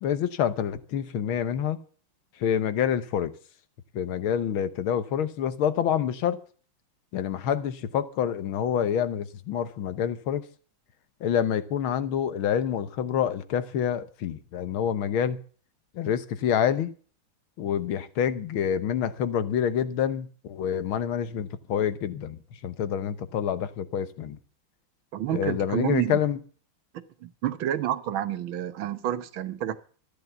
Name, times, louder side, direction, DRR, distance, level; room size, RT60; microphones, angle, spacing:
voice 1, 0.0-1.8 2.4-3.3 3.9-6.4 7.1-10.4 11.2-15.4 15.9-16.9 17.6-24.4 25.3-26.4, left 9 dB, 75° left, 1.8 m, -27 dB
voice 2, 25.1-26.2 27.2-29.8, right 12 dB, 70° right, 1.7 m, -29 dB
14.0 x 10.5 x 7.0 m
omnidirectional pair, 2.3 m